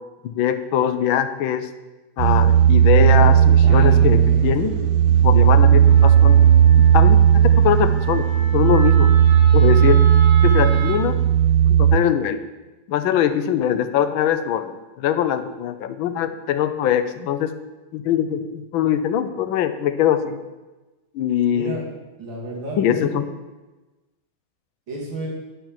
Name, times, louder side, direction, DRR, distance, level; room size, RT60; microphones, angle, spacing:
voice 1, 0.2-1.7 2.2-4.7 5.2-6.4 6.8-8.3 8.5-9.1 9.5-10.0 10.4-11.2 11.7-12.4 12.9-17.6 17.9-20.4 21.1-21.8 22.8-23.2, left 10 dB, 85° left, 10 dB, 1.5 m, -22 dB
sound 1, 2.2-12.0, right 9 dB, 90° right, 1.4 m, -14 dB
voice 2, 3.2-4.8 21.5-21.9 22.2-23.2 24.9-25.3, right 2 dB, 75° right, -3 dB, 3.0 m, -32 dB
Wind instrument woodwind instrument, 5.9-11.0, right 5 dB, 50° right, 1.5 m, -34 dB
11.0 x 4.5 x 7.2 m, 1.1 s
omnidirectional pair, 2.1 m